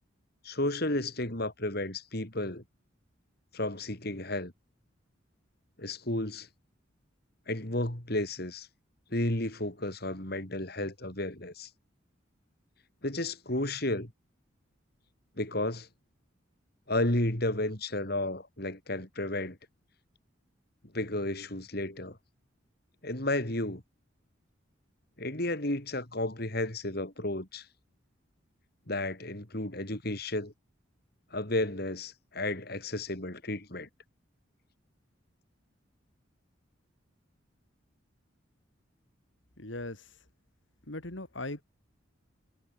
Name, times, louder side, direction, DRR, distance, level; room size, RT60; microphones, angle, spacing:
voice 1, 0.4-2.6 3.5-4.5 5.8-6.5 7.5-8.7 9.1-11.7 13.0-14.1 15.4-15.9 16.9-19.6 20.9-22.2 23.0-23.8 25.2-27.7 28.9-30.5 31.3-33.9, left 1 dB, 50° left, 3.7 m, -32 dB
voice 2, 39.6-40.2 40.9-41.6, left 2 dB, 70° left, 3.0 m, -39 dB
head